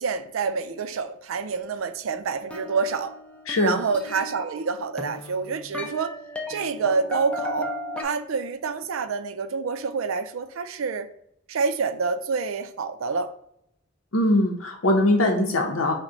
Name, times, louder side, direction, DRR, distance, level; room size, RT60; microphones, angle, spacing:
voice 1, 0.0-3.1 3.6-6.1 6.5-7.7 8.0-11.1 11.5-13.3 15.4-15.6, right 5 dB, 85° right, 10 dB, 0.5 m, -27 dB
sound 1, 2.5-8.0, left 2 dB, 5° left, 0.5 m, -35 dB
voice 2, 3.5-3.8 14.1-15.9, left 1 dB, 80° left, 2 dB, 0.7 m, -21 dB
6.0 x 2.2 x 3.8 m, 0.74 s
head